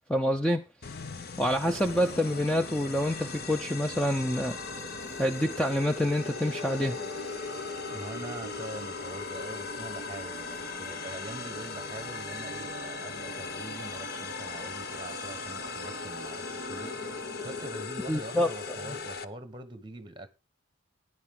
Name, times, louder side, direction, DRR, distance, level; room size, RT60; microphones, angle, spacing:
voice 1, 0.1-0.6 1.4-4.6 5.2-7.0 18.1-18.5, equal, 5° left, 0.5 m, -27 dB
sound 1, 0.8-19.2, left 5 dB, 50° left, 0.7 m, -39 dB
sound 2, 1.6-17.9, right 1 dB, 80° left, 3.7 m, -43 dB
voice 2, 7.9-20.3, right 1 dB, 25° right, 1.2 m, -43 dB
14.5 x 9.7 x 3.7 m
head